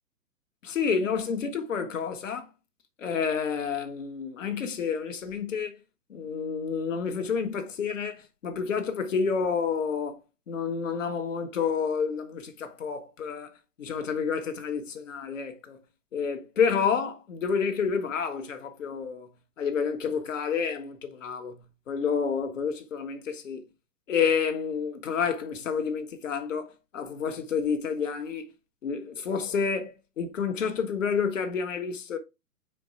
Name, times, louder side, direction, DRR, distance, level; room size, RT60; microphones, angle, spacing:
voice 1, 0.6-2.5 3.0-5.8 6.1-10.2 10.5-15.8 16.1-19.3 19.6-21.6 21.9-23.6 24.1-28.5 28.8-32.2, left 6 dB, 50° left, 1.7 m, -29 dB
5.1 x 4.7 x 4.7 m
figure-of-eight pair, 125°, 47 cm